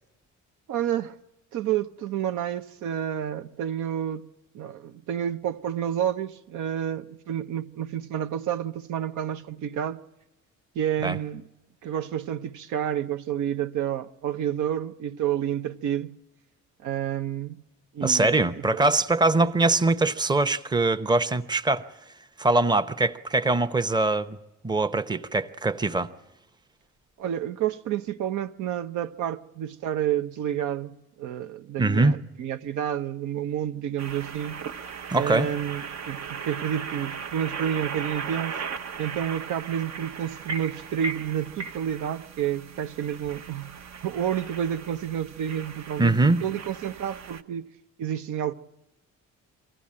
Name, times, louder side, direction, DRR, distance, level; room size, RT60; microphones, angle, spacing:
voice 1, 0.7-1.2 1.5-4.3 4.5-10.0 10.7-11.4 11.8-16.1 16.8-17.6 17.9-18.9 19.4-19.5 27.2-34.6 35.1-38.6 39.0-43.7 44.0-47.7 48.0-48.5, right 10 dB, 80° right, 0.8 m, -30 dB
voice 2, 18.0-21.8 22.4-24.4 24.6-26.1 31.8-32.2 35.1-35.5 46.0-46.4, right 2 dB, 15° right, 0.8 m, -22 dB
sound 1, 34.0-47.4, right 5 dB, 60° right, 1.1 m, -37 dB
23.5 x 16.0 x 8.7 m
cardioid pair, 90°, 30 cm